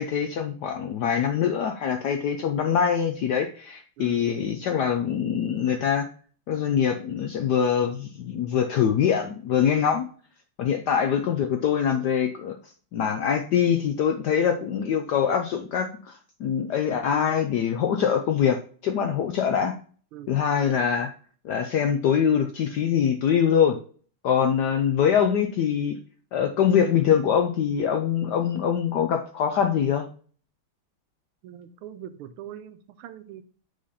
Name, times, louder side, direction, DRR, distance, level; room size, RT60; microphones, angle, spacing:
voice 1, 0.0-6.1 6.5-10.1 10.6-12.6 12.9-19.7 20.3-21.1 21.4-23.8 24.2-26.0 26.3-30.1, left 8 dB, 75° left, 0.9 m, -24 dB
voice 2, 4.0-4.3 20.1-20.3 31.4-33.4, right 10 dB, 85° right, 1.5 m, -42 dB
6.2 x 4.0 x 4.1 m
omnidirectional pair, 2.4 m